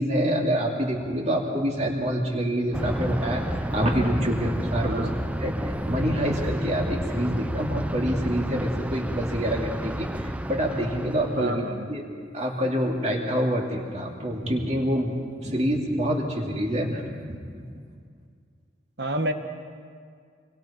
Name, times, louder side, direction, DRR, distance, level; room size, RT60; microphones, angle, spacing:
voice 1, 0.0-5.1 5.4-11.6 11.9-12.0 12.3-17.0 17.3-17.7, equal, 35° right, 0 dB, 2.6 m, -26 dB
Thunder, 2.7-11.5, right 1 dB, 5° right, 0.4 m, -30 dB
voice 2, 4.8-5.1 11.4-11.9 19.0-19.3, right 1 dB, 60° right, 7 dB, 1.4 m, -29 dB
26.0 x 23.5 x 4.4 m, 2.1 s
head